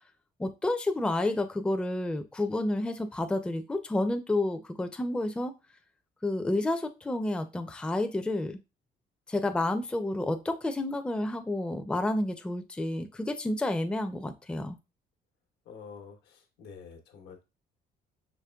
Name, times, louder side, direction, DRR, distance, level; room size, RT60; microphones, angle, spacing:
voice 1, 0.4-5.5 6.2-8.6 9.3-14.8, left 2 dB, 5° left, 7 dB, 0.4 m, -30 dB
voice 2, 15.6-17.4, left 6 dB, 80° left, 4 dB, 1.0 m, -48 dB
5.1 x 3.1 x 2.3 m, 0.26 s
cardioid pair, 110°, 17 cm